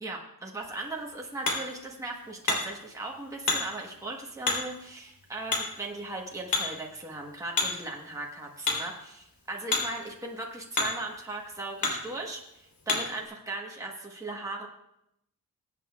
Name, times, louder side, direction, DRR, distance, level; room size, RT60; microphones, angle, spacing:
voice 1, 0.0-14.7, right 2 dB, 10° right, -1 dB, 1.1 m, -38 dB
Hammer, 0.6-13.2, left 3 dB, 80° left, 3.4 m, -34 dB
22.0 x 8.6 x 2.3 m, 0.80 s
wide cardioid pair, 180°, 34 cm